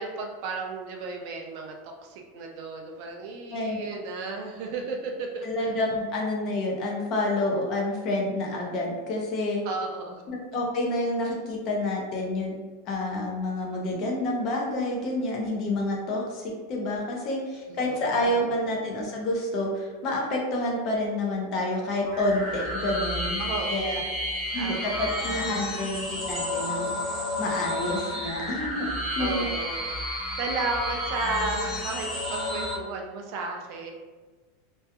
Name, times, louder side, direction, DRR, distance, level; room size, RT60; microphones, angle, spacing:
voice 1, 0.0-5.7 9.6-10.2 17.7-18.2 23.4-24.1 24.5-25.6 29.2-29.9 30.4-33.9, right 3 dB, 40° right, 2 dB, 0.3 m, -34 dB
voice 2, 3.5-3.8 5.4-9.6 10.3-12.6 12.9-23.4 23.7-24.0 24.5-26.9 27.4-28.9 29.2-29.6, left 1 dB, 30° left, -1 dB, 0.4 m, -28 dB
sound 1, 22.0-32.7, left 1 dB, ahead, 1.0 m, -31 dB
2.2 x 2.2 x 2.7 m, 1.3 s
supercardioid pair, 175°, 0 cm